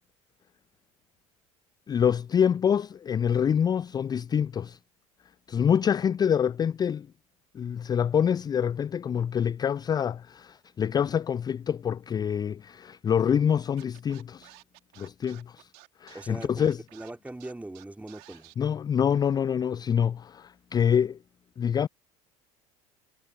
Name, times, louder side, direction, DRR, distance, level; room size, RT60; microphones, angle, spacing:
voice 1, 1.9-4.8 5.5-7.1 7.5-14.5 15.0-15.7 16.0-16.8 18.6-21.2 21.6-21.9, left 8 dB, 20° left, 0.4 m, -26 dB
Scratching (performance technique), 13.8-18.5, right 28 dB, 60° right, 2.4 m, -52 dB
voice 2, 16.1-18.5, right 2 dB, 10° right, 4.0 m, -41 dB
figure-of-eight pair, 70°, 18 cm